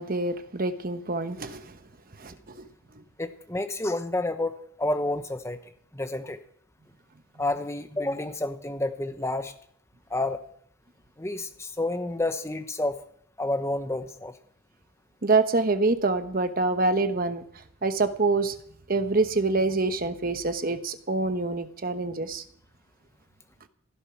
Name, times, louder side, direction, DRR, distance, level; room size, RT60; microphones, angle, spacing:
voice 1, 0.0-1.7 2.2-2.7 15.2-17.4 17.8-18.5 18.9-22.4, right 3 dB, 40° right, 9 dB, 1.0 m, -26 dB
voice 2, 3.2-5.6 5.9-6.4 7.4-9.5 10.1-10.4 11.2-13.0 13.4-14.3, left 2 dB, 15° left, 8 dB, 0.9 m, -29 dB
16.0 x 12.0 x 5.9 m, 0.66 s
head